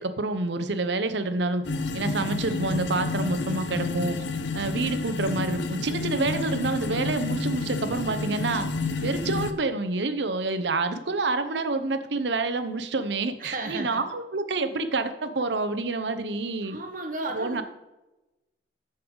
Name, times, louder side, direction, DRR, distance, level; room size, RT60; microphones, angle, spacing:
voice 1, 0.0-1.6 1.9-4.2 4.5-8.7 9.0-16.8 17.3-17.6, right 3 dB, 80° right, 10 dB, 0.8 m, -28 dB
sound 1, 1.6-9.5, left 3 dB, 90° left, 0.7 m, -30 dB
voice 2, 8.9-9.4 13.4-14.0 16.6-17.6, right 2 dB, 50° right, 4 dB, 1.2 m, -35 dB
14.0 x 5.4 x 3.9 m, 1.0 s
head